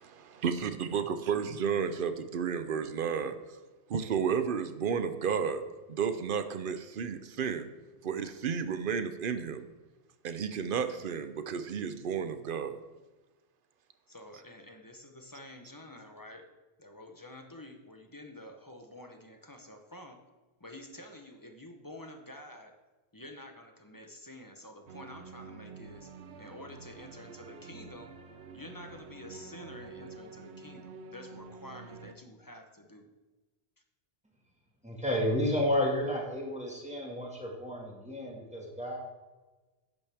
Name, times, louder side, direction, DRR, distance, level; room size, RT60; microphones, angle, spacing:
voice 1, 0.4-3.4 3.9-5.6 5.9-7.7 8.0-9.7 10.2-12.8, right 7 dB, 55° right, 10 dB, 0.8 m, -32 dB
voice 2, 14.1-16.5 16.8-20.3 20.6-22.8 23.1-28.1 28.5-33.1, left 1 dB, 20° left, 5 dB, 0.8 m, -49 dB
sound 1, 24.9-32.1, right 4 dB, 80° right, 1.0 m, -48 dB
voice 3, 34.8-39.0, left 1 dB, 5° right, -2 dB, 1.8 m, -31 dB
10.5 x 8.6 x 3.5 m, 1.2 s
omnidirectional pair, 1.1 m